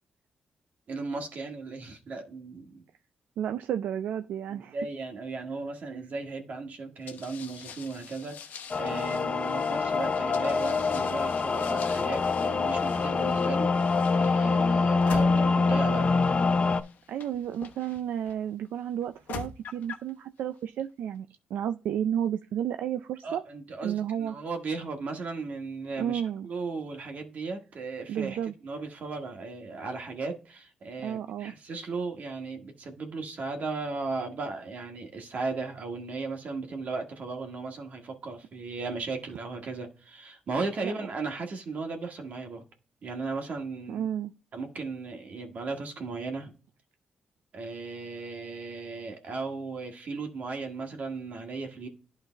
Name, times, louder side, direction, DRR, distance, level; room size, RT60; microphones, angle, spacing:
voice 1, 0.9-2.8 4.5-16.2 23.2-42.6 43.0-44.1 44.5-46.5 47.5-51.9, right 3 dB, 60° right, 1.7 m, -36 dB
voice 2, 3.4-4.8 17.1-23.4 23.8-24.4 26.0-26.5 28.1-28.5 31.0-31.5 40.8-40.9 43.9-44.3, right 9 dB, 85° right, 0.4 m, -32 dB
sound 1, 7.1-18.3 19.0-20.1, left 6 dB, 75° left, 1.0 m, -45 dB
sound 2, 8.7-16.8, left 4 dB, 40° left, 0.6 m, -25 dB
11.5 x 3.9 x 3.4 m
cardioid pair, 80°, 3 cm